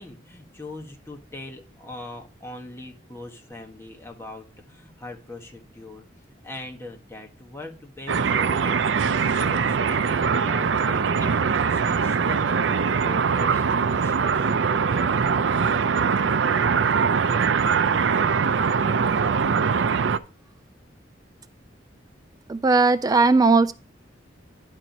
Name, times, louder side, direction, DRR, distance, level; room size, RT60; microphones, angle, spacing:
voice 1, 0.0-12.5 12.9-15.8, left 2 dB, 15° left, 1.3 m, -41 dB
sound 1, 8.1-20.2, right 6 dB, 75° right, 0.5 m, -22 dB
voice 2, 22.5-23.7, right 3 dB, 20° right, 0.3 m, -18 dB
11.0 x 4.5 x 5.3 m
head